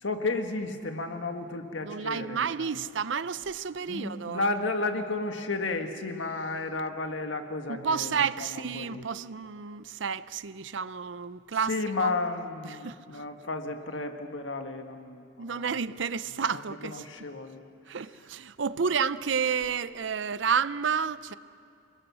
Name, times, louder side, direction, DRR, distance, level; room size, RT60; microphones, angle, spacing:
voice 1, 0.0-2.7 3.9-9.0 11.7-15.6 16.5-17.6, left 3 dB, 85° left, 1.7 m, -33 dB
voice 2, 1.8-4.5 7.7-11.7 12.0-12.1 12.6-13.2 15.4-17.0 17.9-21.3, right 6 dB, 80° right, 0.6 m, -30 dB
28.0 x 20.5 x 6.3 m
head